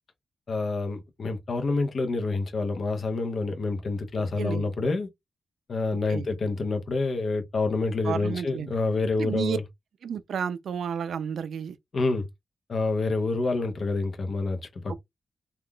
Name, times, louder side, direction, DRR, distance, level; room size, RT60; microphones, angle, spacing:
voice 1, 0.5-5.1 5.7-9.6 11.9-12.3 12.7-15.0, left 3 dB, 50° left, 0.7 m, -27 dB
voice 2, 8.0-8.7 9.2-9.6 10.0-11.8 14.9-15.0, right 7 dB, 75° right, 0.3 m, -31 dB
3.5 x 2.4 x 2.2 m
wide cardioid pair, 120°, 0 cm